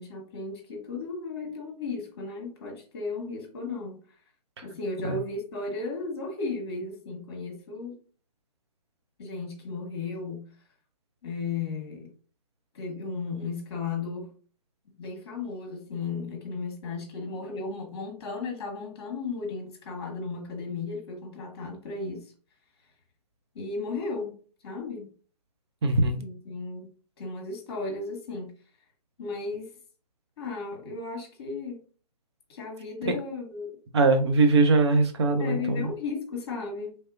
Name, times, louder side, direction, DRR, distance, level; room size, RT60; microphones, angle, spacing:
voice 1, 0.0-4.0 4.6-7.9 9.2-10.4 11.2-12.1 12.7-14.3 15.0-22.2 23.5-24.4 24.6-25.1 25.9-26.9 27.2-28.5 29.2-29.7 30.4-31.8 32.5-33.7 35.4-37.0, left 4 dB, 40° left, 1.2 m, -35 dB
voice 2, 25.8-26.2 33.0-33.2 33.9-35.9, right 3 dB, 40° right, 0.6 m, -22 dB
3.2 x 2.7 x 2.4 m
figure-of-eight pair, 140°, 21 cm